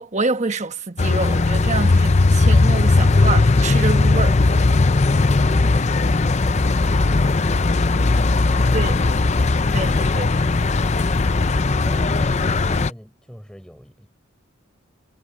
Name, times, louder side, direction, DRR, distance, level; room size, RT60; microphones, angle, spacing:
voice 1, 0.0-4.4 8.7-9.0 9.7-10.5, right 3 dB, 35° right, 1.2 m, -26 dB
sound 1, 1.0-12.9, left 3 dB, 30° left, 0.5 m, -18 dB
voice 2, 11.8-14.1, equal, 5° left, 7.0 m, -43 dB
head